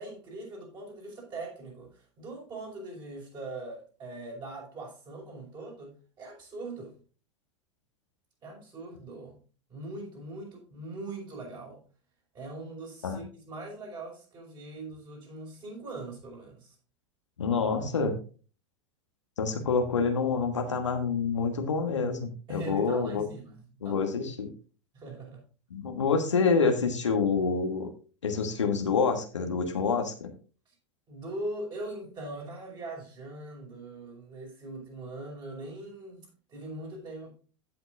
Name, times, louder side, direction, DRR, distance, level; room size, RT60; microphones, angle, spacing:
voice 1, 0.0-6.9 8.4-9.4 9.7-11.8 12.3-16.8 22.5-24.0 24.9-25.4 30.7-30.8 31.1-37.3, right 2 dB, 30° right, 5.3 m, -41 dB
voice 2, 17.4-18.1 19.4-23.2 23.8-24.5 25.7-27.9 28.2-30.3, left 5 dB, 75° left, 1.4 m, -27 dB
15.5 x 6.0 x 2.6 m
figure-of-eight pair, 90°, 15 cm